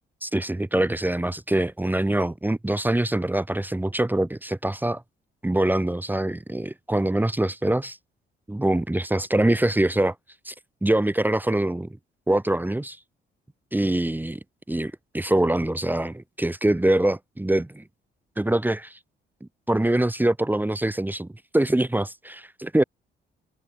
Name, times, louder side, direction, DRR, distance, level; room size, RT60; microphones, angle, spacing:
voice 1, 0.2-5.0 5.4-8.0 8.5-10.1 10.4-10.5 10.8-12.0 12.3-13.0 13.7-14.4 14.7-17.8 18.4-19.0 19.7-21.3 21.5-22.8, right 1 dB, 10° right, 1.5 m, -24 dB
cardioid pair, 90°, 20 cm